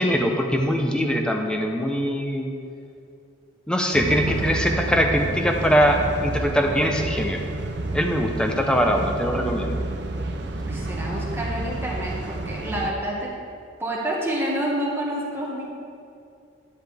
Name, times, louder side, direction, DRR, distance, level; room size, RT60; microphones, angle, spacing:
voice 1, 0.0-2.5 3.7-7.5 7.9-9.8, equal, 5° left, 2 dB, 0.8 m, -22 dB
sound 1, 3.9-12.9, right 2 dB, 70° right, 0.8 m, -30 dB
voice 2, 10.6-13.3 13.8-15.7, right 1 dB, 15° right, -4 dB, 1.5 m, -28 dB
10.5 x 10.0 x 3.5 m, 2.4 s
head